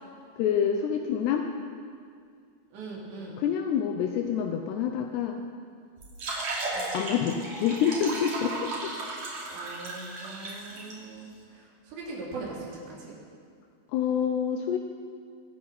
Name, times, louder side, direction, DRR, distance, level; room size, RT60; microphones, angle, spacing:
voice 1, 0.4-1.5 3.4-5.4 6.9-8.9 13.9-14.8, left 8 dB, 80° left, 4 dB, 2.9 m, -27 dB
voice 2, 2.7-3.4 6.7-7.0 9.5-13.2, right 3 dB, 85° right, -4 dB, 5.6 m, -41 dB
sound 1, 6.0-10.9, right 2 dB, 45° right, 3.8 m, -35 dB
25.0 x 9.7 x 5.9 m, 2.2 s
omnidirectional pair, 4.8 m